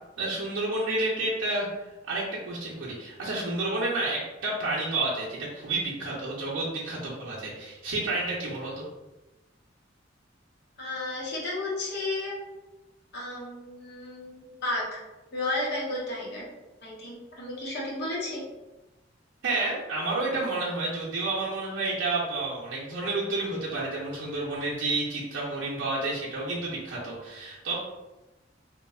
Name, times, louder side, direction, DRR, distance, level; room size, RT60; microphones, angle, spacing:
voice 1, 0.2-1.7 2.1-8.8 19.4-27.8, right 2 dB, 90° right, -6 dB, 0.6 m, -30 dB
voice 2, 10.8-12.4 13.1-15.0 15.3-16.4 16.8-18.4, left 2 dB, 60° left, -5 dB, 0.7 m, -33 dB
2.9 x 2.0 x 2.3 m, 1.1 s
head